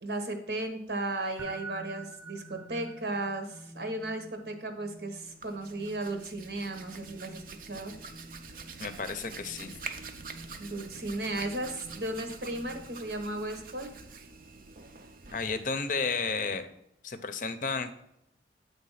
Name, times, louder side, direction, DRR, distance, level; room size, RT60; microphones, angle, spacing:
voice 1, 0.0-8.0 10.6-13.9, right 2 dB, 75° right, 5 dB, 1.2 m, -35 dB
sound 1, 1.4-13.1, right 2 dB, 5° right, 0.5 m, -50 dB
Hands, 5.2-16.6, right 4 dB, 50° right, 0.6 m, -46 dB
voice 2, 8.8-9.7 15.3-16.7 17.0-17.9, left 4 dB, 45° left, 9 dB, 0.6 m, -32 dB
8.5 x 3.4 x 5.6 m, 0.79 s
head